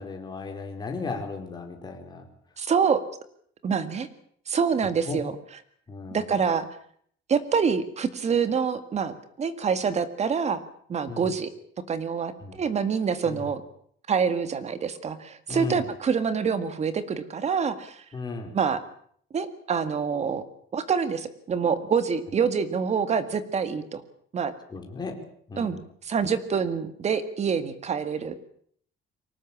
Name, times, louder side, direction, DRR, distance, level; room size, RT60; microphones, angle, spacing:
voice 1, 0.0-2.3 5.1-5.2 5.9-6.3 11.1-11.3 12.4-12.6 13.2-13.5 15.5-15.9 18.1-18.6 24.7-25.2 25.5-25.8, left 4 dB, 20° left, 2 dB, 4.5 m, -35 dB
voice 2, 2.6-3.0 3.6-4.1 4.5-5.3 6.1-6.7 7.3-10.6 10.9-11.5 11.9-13.6 14.1-18.0 18.5-18.8 19.3-20.4 20.7-24.0 24.3-24.5 25.6-25.8 26.0-28.3, right 6 dB, 30° right, 12 dB, 2.0 m, -26 dB
24.0 x 19.0 x 8.7 m, 0.62 s
cardioid pair, 180°, 21 cm